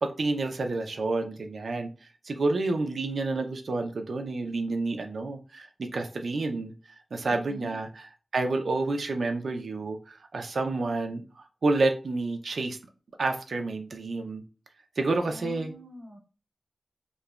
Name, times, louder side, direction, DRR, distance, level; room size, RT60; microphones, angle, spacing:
voice 1, 0.0-1.9 2.3-6.7 7.1-8.1 8.3-11.2 11.6-12.8 13.2-14.4 15.0-15.7, right 3 dB, 90° right, 6 dB, 0.4 m, -29 dB
voice 2, 7.3-7.8 15.2-16.2, left 1 dB, 60° right, 0 dB, 0.9 m, -43 dB
3.0 x 2.1 x 2.3 m, 0.34 s
wide cardioid pair, 70°, 0 cm